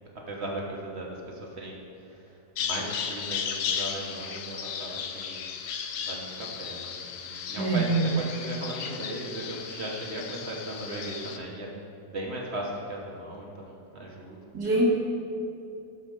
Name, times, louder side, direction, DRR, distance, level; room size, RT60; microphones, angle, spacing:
voice 1, 0.3-1.8 2.1-5.5 6.1-7.9 8.2-11.8 12.1-14.4, right 1 dB, 45° right, -1 dB, 1.2 m, -37 dB
Bird vocalization bird call bird song, 2.6-11.4, left 7 dB, 70° left, 0.9 m, -35 dB
voice 2, 7.6-8.0 14.5-14.9, right 2 dB, 80° right, -4 dB, 2.2 m, -24 dB
11.5 x 4.3 x 5.2 m, 2.7 s
omnidirectional pair, 1.7 m